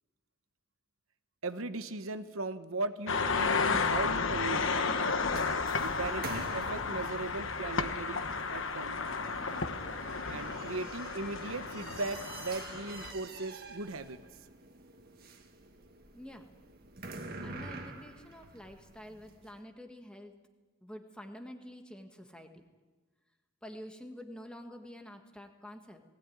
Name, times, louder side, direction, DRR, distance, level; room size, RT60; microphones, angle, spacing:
voice 1, 1.4-4.6 5.8-9.0 10.3-14.2, right 3 dB, 70° right, 10 dB, 1.0 m, -38 dB
sound 1, 3.1-13.1, left 4 dB, 60° left, 1.1 m, -33 dB
sound 2, 4.1-19.5, right 3 dB, 45° right, 1.9 m, -48 dB
voice 2, 16.1-16.5 17.4-20.3 20.8-22.6 23.6-26.0, equal, 5° left, 4 dB, 1.4 m, -48 dB
19.5 x 16.5 x 9.4 m, 1.3 s
head